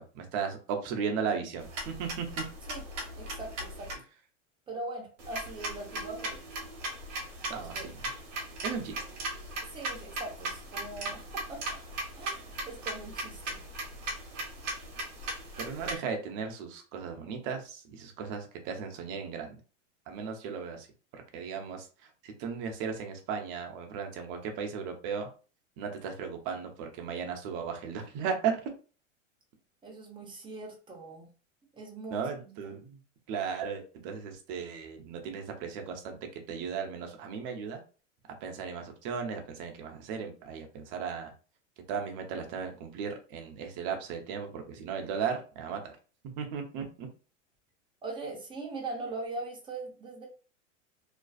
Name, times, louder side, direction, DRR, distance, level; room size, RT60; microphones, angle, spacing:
voice 1, 0.0-2.4 7.5-8.0 8.6-9.0 15.6-19.5 20.1-20.9 21.1-25.3 25.8-28.7 32.1-33.0 33.3-37.8 38.4-41.3 41.9-45.9 46.4-47.1, right 6 dB, 45° right, 4 dB, 0.8 m, -36 dB
sound 1, 1.6-3.9 5.2-16.0, right 2 dB, 70° right, 1.1 m, -38 dB
voice 2, 3.2-3.9 4.7-6.4 7.6-7.9 9.7-11.8 12.2-13.5 29.8-31.3 31.7-32.7 48.0-50.3, right 2 dB, 15° right, -1 dB, 0.8 m, -41 dB
2.5 x 2.3 x 2.3 m, 0.36 s
hypercardioid pair, 115°, 38 cm